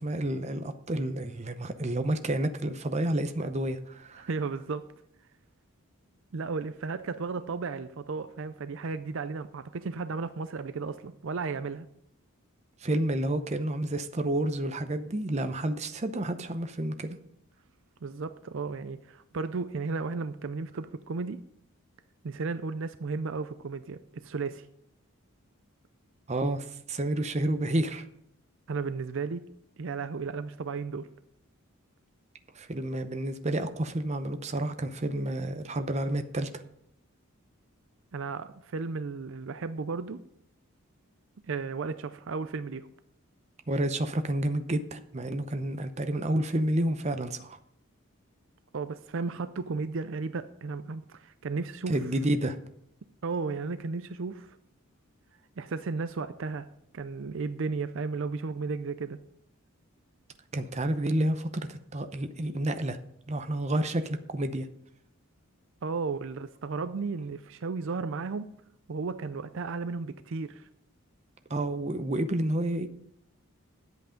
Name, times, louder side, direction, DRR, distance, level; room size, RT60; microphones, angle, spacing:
voice 1, 0.0-4.3 12.8-17.2 26.3-28.0 32.5-36.5 43.7-47.6 51.9-52.6 60.5-63.0 63.3-64.7 71.5-72.9, right 1 dB, 30° right, 8 dB, 0.7 m, -30 dB
voice 2, 4.3-4.9 6.3-11.9 18.0-21.4 22.2-24.7 28.7-29.4 29.8-31.1 38.1-40.2 41.5-42.9 48.7-52.0 53.2-54.6 55.6-56.7 56.9-59.2 65.8-68.5 68.9-70.7, right 4 dB, 60° right, 12 dB, 0.5 m, -34 dB
10.0 x 8.2 x 5.1 m, 0.73 s
head